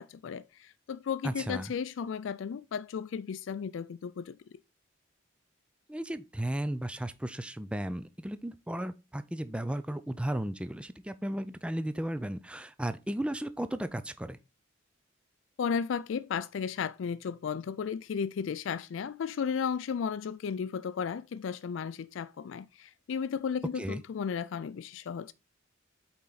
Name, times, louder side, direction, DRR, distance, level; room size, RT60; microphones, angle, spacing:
voice 1, 0.0-4.4 15.6-25.3, left 6 dB, 70° left, 0.3 m, -34 dB
voice 2, 1.2-1.7 5.9-14.4 23.8-24.0, right 1 dB, 5° right, 0.4 m, -35 dB
8.3 x 4.4 x 4.0 m
head